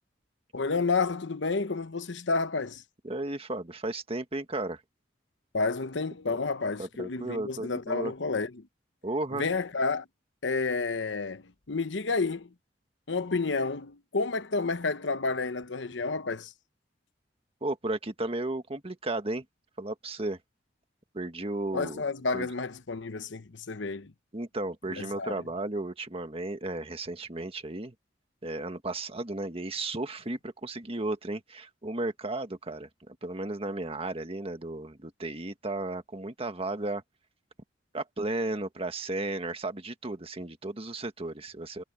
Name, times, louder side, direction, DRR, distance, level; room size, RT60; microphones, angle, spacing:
voice 1, 0.5-2.8 5.5-8.7 9.3-10.1 10.4-12.5 13.1-16.5 21.7-24.1 24.9-25.4, left 4 dB, 80° left, 1.0 m, -30 dB
voice 2, 3.0-4.8 6.3-6.4 6.8-8.1 9.0-9.5 17.6-19.4 19.8-20.4 21.1-22.0 22.3-22.5 24.3-27.9 28.4-37.0 37.9-41.8, right 2 dB, 35° right, 1.7 m, -34 dB
head